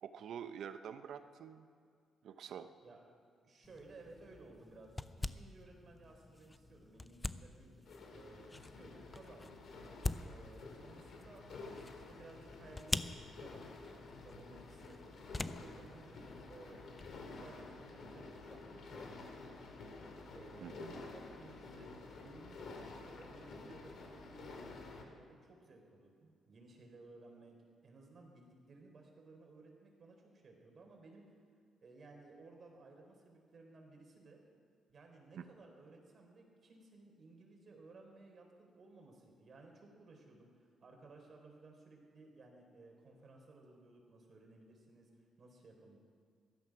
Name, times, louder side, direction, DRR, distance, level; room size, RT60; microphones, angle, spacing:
voice 1, 0.0-1.7 2.2-2.7 20.6-21.0 35.4-35.5, right 8 dB, 70° right, 10 dB, 0.8 m, -47 dB
voice 2, 3.4-9.6 10.2-16.2 16.5-16.9 17.4-19.2 20.3-27.6 27.8-31.3 31.8-34.4 34.9-40.5 40.8-46.0, right 3 dB, 45° right, 2 dB, 3.7 m, -58 dB
sound 1, 3.6-17.2, left 2 dB, 20° left, 0.5 m, -46 dB
sound 2, 7.9-25.0, left 3 dB, 65° left, 2.3 m, -51 dB
15.5 x 12.5 x 6.0 m, 2.2 s
cardioid pair, 90°, 0 cm